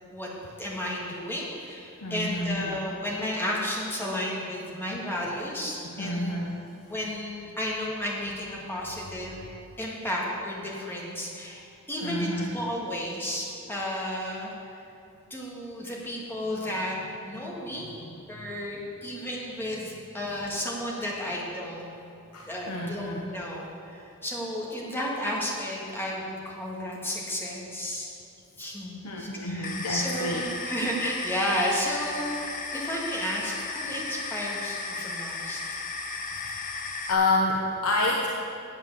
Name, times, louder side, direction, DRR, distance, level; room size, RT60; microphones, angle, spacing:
voice 1, 0.6-6.3 6.9-9.4 9.8-11.6 11.9-14.8 15.3-17.0 17.2-17.9 18.3-21.9 22.5-28.1 28.6-35.6, equal, 10° left, -4 dB, 1.9 m, -32 dB
voice 2, 2.0-2.8 6.0-6.7 12.0-12.6 22.3-23.3 29.0-30.4 36.7-36.8 37.1-38.3, left 2 dB, 85° left, -1 dB, 0.9 m, -28 dB
sound 1, 29.6-37.1, left 3 dB, 35° left, 0.9 m, -35 dB
8.8 x 7.8 x 7.0 m, 2.7 s
head